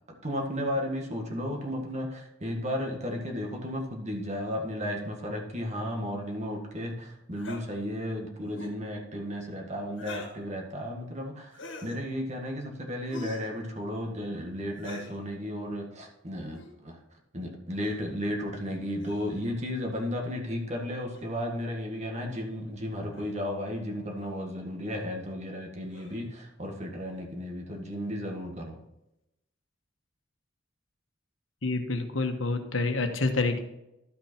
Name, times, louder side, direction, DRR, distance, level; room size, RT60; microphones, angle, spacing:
voice 1, 0.1-17.0 17.3-28.8, equal, 35° right, 1 dB, 1.7 m, -34 dB
sound 1, 7.4-7.6 8.5-8.8 10.0-10.4 11.5-12.0 13.1-13.5 14.8-15.2 16.5-16.7 17.8-18.0 19.0-19.5 21.1-21.3 22.3-22.4 23.1-23.4 24.2-24.3 25.9-26.3, left 2 dB, 75° left, 1.7 m, -44 dB
voice 2, 31.6-33.6, left 3 dB, 90° left, 5 dB, 1.2 m, -28 dB
12.0 x 5.7 x 4.4 m, 0.88 s
head